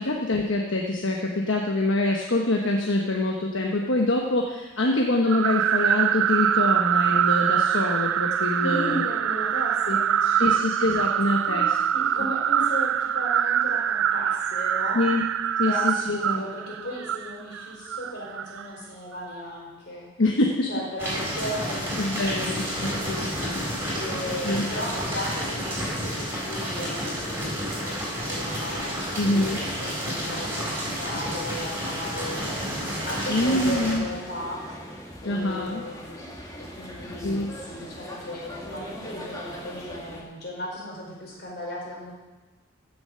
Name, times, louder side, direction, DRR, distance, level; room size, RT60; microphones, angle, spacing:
voice 1, 0.0-9.0 9.9-10.0 10.4-11.7 14.9-15.2 15.6-16.4 20.2-20.7 22.0-23.3 24.4-24.7 29.2-29.6 33.3-34.0 35.2-35.8 37.2-37.5, left 2 dB, 75° left, 1 dB, 1.1 m, -25 dB
sound 1, 5.3-18.6, right 9 dB, 80° right, 0.4 m, -24 dB
voice 2, 8.6-10.6 11.5-15.0 15.6-20.1 20.6-23.3 23.9-34.7 35.2-42.1, equal, 55° left, -3 dB, 4.7 m, -36 dB
sound 2, 21.0-33.9, equal, 10° right, 4.2 m, -30 dB
sound 3, 33.0-40.2, equal, 15° left, 2.0 m, -40 dB
15.0 x 7.0 x 6.7 m, 1.2 s
head